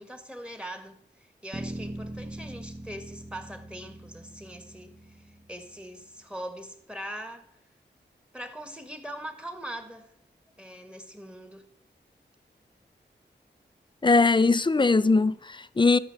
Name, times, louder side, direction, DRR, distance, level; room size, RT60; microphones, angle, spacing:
voice 1, 0.0-7.4 8.3-10.1 10.6-11.6, right 1 dB, 5° right, 1.7 m, -41 dB
sound 1, 1.5-5.9, right 1 dB, 35° right, 1.3 m, -41 dB
voice 2, 14.0-16.0, left 3 dB, 25° left, 0.5 m, -21 dB
12.0 x 5.5 x 7.0 m
cardioid pair, 45°, 19 cm